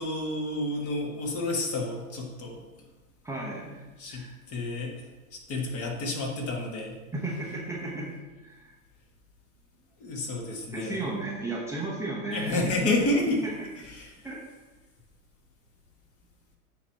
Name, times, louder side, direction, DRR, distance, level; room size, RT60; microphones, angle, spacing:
voice 1, 0.0-2.6 4.0-7.0 10.0-11.1 12.3-13.4 13.8-14.3, left 2 dB, 30° left, 0 dB, 1.6 m, -30 dB
voice 2, 3.2-3.8 4.1-4.4 7.1-8.1 8.4-8.7 10.7-12.9 14.2-14.4, right 2 dB, 5° right, -5 dB, 0.8 m, -34 dB
8.0 x 3.0 x 5.8 m, 1.2 s
hypercardioid pair, 120°, 43 cm